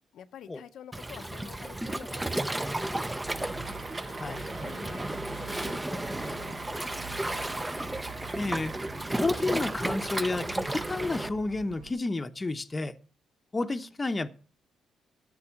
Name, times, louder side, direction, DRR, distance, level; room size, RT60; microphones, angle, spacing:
voice 1, 0.1-3.5 4.1-7.0, left 9 dB, 70° left, 0.7 m, -49 dB
Waves surf, 0.9-11.3, right 1 dB, 10° right, 0.5 m, -33 dB
sound 1, 3.1-11.9, right 5 dB, 90° right, 1.4 m, -47 dB
sound 2, 3.6-10.4 11.3-11.4, right 5 dB, 65° right, 1.7 m, -47 dB
voice 2, 8.3-8.7 9.1-12.9 13.5-14.3, left 3 dB, 25° left, 0.8 m, -31 dB
12.5 x 6.1 x 7.2 m
cardioid pair, 90°, 0 cm